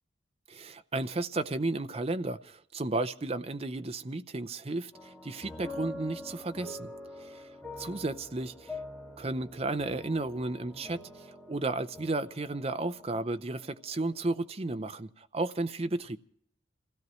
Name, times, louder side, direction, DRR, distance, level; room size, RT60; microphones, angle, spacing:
voice 1, 0.5-6.9 7.2-8.8 9.2-16.2, right 2 dB, 30° right, 0.6 m, -33 dB
sound 1, 4.9-14.3, left 2 dB, 10° left, 2.0 m, -45 dB
27.0 x 16.5 x 3.1 m
head